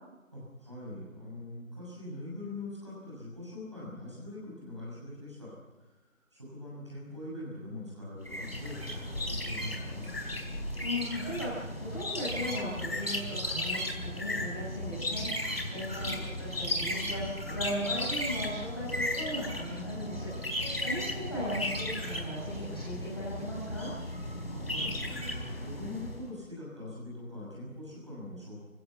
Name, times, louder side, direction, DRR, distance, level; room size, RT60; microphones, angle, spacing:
voice 1, 0.3-5.9 6.3-10.4 15.9-16.5 24.5-28.6, left 1 dB, 20° right, -6 dB, 6.5 m, -43 dB
sound 1, 8.2-26.3, left 1 dB, 45° left, 4.4 m, -35 dB
voice 2, 10.8-23.9, equal, 20° left, -7 dB, 6.6 m, -37 dB
27.0 x 16.5 x 8.4 m, 1.1 s
figure-of-eight pair, 180°, 42 cm